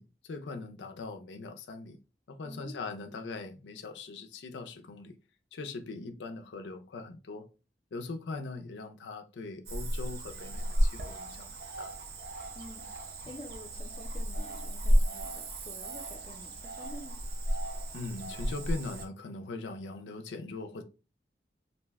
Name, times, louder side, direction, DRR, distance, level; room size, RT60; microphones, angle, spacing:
voice 1, 0.0-2.0 2.3-5.1 5.5-7.5 7.9-11.5 11.8-11.9 17.9-20.8, left 3 dB, 90° left, 0.4 m, -41 dB
voice 2, 2.4-2.8 12.5-12.8 13.3-17.2, left 1 dB, 30° left, 0.5 m, -48 dB
Cricket / Frog, 9.7-19.1, equal, 60° right, 0.5 m, -33 dB
2.6 x 2.1 x 3.4 m
head